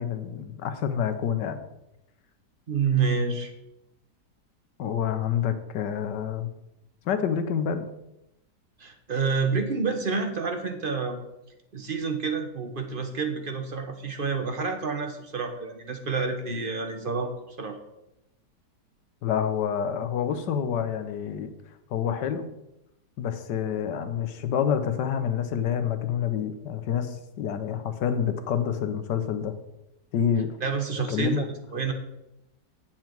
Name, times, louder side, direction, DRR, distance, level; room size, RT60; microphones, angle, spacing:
voice 1, 0.0-1.6 4.8-6.5 7.0-7.9 19.2-21.5 21.9-22.5 23.2-29.5 30.1-30.6 31.1-31.4, left 8 dB, 80° left, 9 dB, 1.5 m, -28 dB
voice 2, 2.7-3.5 8.8-11.2 11.7-17.3 17.6-17.8 30.6-31.9, right 5 dB, 40° right, 5 dB, 1.0 m, -28 dB
9.1 x 7.4 x 4.5 m, 0.89 s
omnidirectional pair, 1.9 m